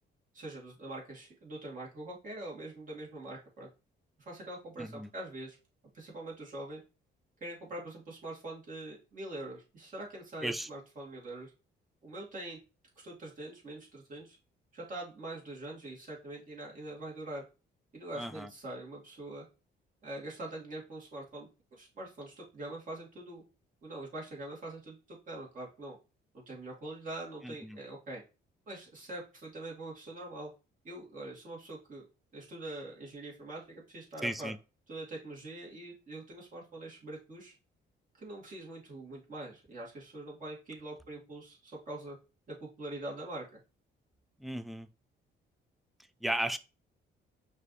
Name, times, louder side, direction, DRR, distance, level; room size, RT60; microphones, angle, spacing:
voice 1, 0.3-3.7 4.3-5.6 5.9-6.8 7.4-11.5 12.0-12.6 13.0-14.4 14.7-17.4 17.9-19.5 20.0-23.4 23.8-26.0 26.3-28.2 28.7-30.5 30.8-32.1 32.3-34.5 34.9-37.5 38.2-42.2 42.5-43.4, right 1 dB, 40° right, 2.4 m, -43 dB
voice 2, 4.8-5.1 10.4-10.7 18.2-18.5 27.4-27.8 34.2-34.6 44.4-44.9 46.2-46.6, right 1 dB, ahead, 0.4 m, -35 dB
5.4 x 2.8 x 3.3 m
cardioid pair, 90°, 20 cm